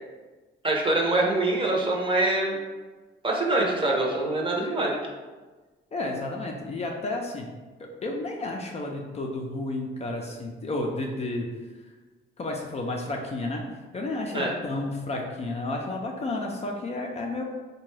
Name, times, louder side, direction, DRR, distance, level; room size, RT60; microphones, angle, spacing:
voice 1, 0.6-2.6 3.2-5.0 14.3-14.5, right 2 dB, 25° right, -1 dB, 0.7 m, -24 dB
voice 2, 5.9-7.5 7.8-11.5 12.4-13.6 13.9-17.4, left 2 dB, 35° left, 0 dB, 0.4 m, -31 dB
3.6 x 2.2 x 3.2 m, 1.3 s
cardioid pair, 90°, 20 cm